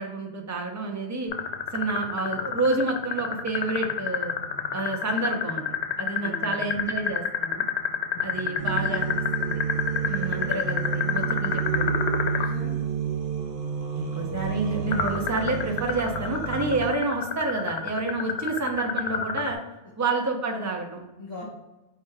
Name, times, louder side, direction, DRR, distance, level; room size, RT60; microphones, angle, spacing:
voice 1, 0.0-1.3 1.7-4.3 4.7-5.7 6.0-7.6 8.2-9.1 9.4-9.6 10.0-12.1 13.9-19.6 20.0-21.0, right 3 dB, 20° right, 2 dB, 0.5 m, -29 dB
sound 1, 1.3-12.5 14.9-19.6, left 8 dB, 85° left, 0.9 m, -27 dB
voice 2, 6.2-6.6 8.1-8.5 10.3-10.7 12.2-12.8 21.2-21.5, left 2 dB, 40° left, -7 dB, 1.4 m, -41 dB
sound 2, 8.6-16.9, right 7 dB, 70° right, 0.9 m, -30 dB
4.5 x 3.3 x 3.3 m, 1.0 s
omnidirectional pair, 1.1 m